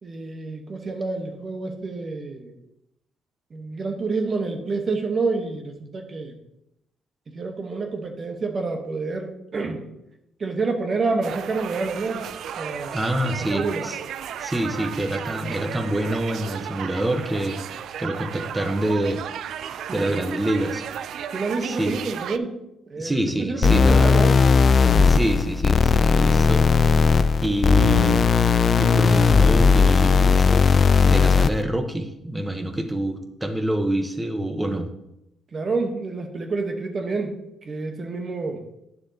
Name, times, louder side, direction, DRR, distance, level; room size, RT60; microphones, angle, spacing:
voice 1, 0.0-2.5 3.5-6.4 7.3-9.9 10.4-12.2 12.6-13.0 13.5-13.9 19.9-20.1 21.3-22.6 22.9-24.4 35.5-38.6, right 3 dB, 45° right, 4 dB, 1.0 m, -28 dB
sound 1, 11.2-22.4, right 9 dB, 70° right, 0.3 m, -34 dB
voice 2, 12.9-14.0 14.4-17.6 18.0-19.2 19.7-20.8 21.6-22.0 23.0-24.1 25.0-27.1 27.4-28.3 28.8-34.9, right 1 dB, 15° right, 6 dB, 0.9 m, -26 dB
sound 2, 23.6-31.6, left 5 dB, 45° left, 0.3 m, -17 dB
9.5 x 6.9 x 2.8 m, 0.85 s
cardioid pair, 90°, 0 cm